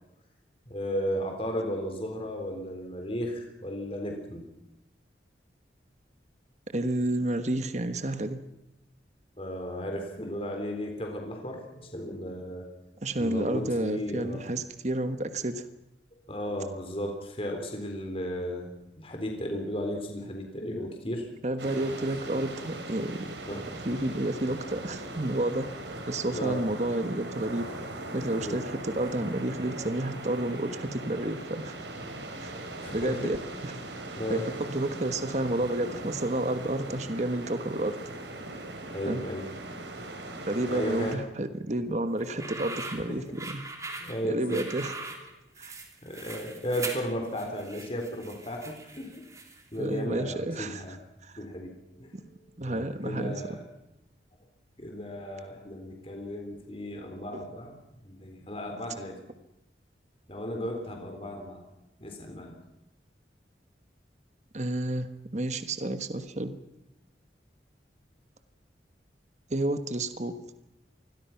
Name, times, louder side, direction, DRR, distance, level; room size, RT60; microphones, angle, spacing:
voice 1, 0.7-4.4 9.4-12.7 13.2-14.4 16.3-21.3 23.4-23.6 26.3-26.6 28.4-28.6 32.8-33.4 34.2-34.5 38.9-39.5 40.7-41.2 42.3-42.5 43.1-43.3 44.0-44.9 46.0-49.3 49.7-51.0 51.4-53.6 54.8-57.8 58.0-59.2 60.3-61.6 62.0-62.6, equal, 30° left, 3 dB, 3.7 m, -35 dB
voice 2, 6.7-8.4 13.0-15.7 21.4-25.7 26.1-27.7 28.1-31.9 32.4-32.5 32.9-33.4 33.6-33.7 34.3-37.9 39.0-39.2 40.5-43.6 44.2-44.9 45.6-45.7 49.8-50.8 51.2-51.3 52.1-52.2 52.6-53.4 57.3-57.4 64.5-65.1 65.3-66.5 69.5-70.4, right 1 dB, 40° right, 9 dB, 1.4 m, -30 dB
sound 1, 21.6-41.2, right 2 dB, 75° right, 4.6 m, -40 dB
sound 2, 42.2-49.8, right 3 dB, 15° right, 2.9 m, -41 dB
27.5 x 21.5 x 5.9 m, 0.93 s
head